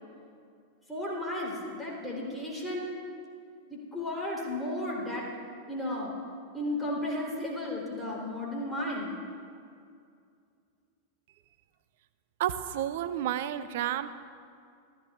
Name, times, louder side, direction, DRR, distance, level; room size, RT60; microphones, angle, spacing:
voice 1, 0.9-2.9 3.7-5.3 5.7-6.2 6.5-9.2, left 1 dB, ahead, -4 dB, 3.4 m, -34 dB
voice 2, 12.4-14.1, right 11 dB, 55° right, 14 dB, 0.6 m, -31 dB
27.5 x 14.0 x 2.4 m, 2.3 s
figure-of-eight pair, 90°, 0 cm